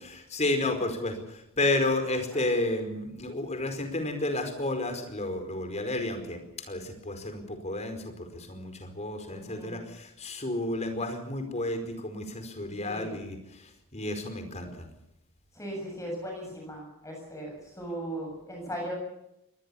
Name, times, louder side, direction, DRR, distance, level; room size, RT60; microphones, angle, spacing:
voice 1, 0.1-14.9, left 2 dB, 30° left, 7 dB, 4.8 m, -31 dB
voice 2, 9.3-9.8 12.8-13.2 15.6-19.0, right 1 dB, 15° left, 0 dB, 7.5 m, -38 dB
24.0 x 20.5 x 7.2 m, 0.83 s
head